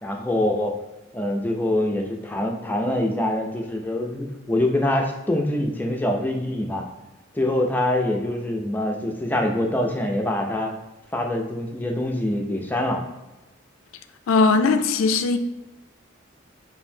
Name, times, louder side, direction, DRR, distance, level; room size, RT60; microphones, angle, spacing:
voice 1, 0.0-0.8 1.1-6.8 7.3-10.7 11.1-13.0, left 1 dB, 10° left, 0.4 m, -24 dB
voice 2, 14.3-15.4, left 4 dB, 85° left, 0.3 m, -19 dB
5.3 x 2.7 x 2.7 m
head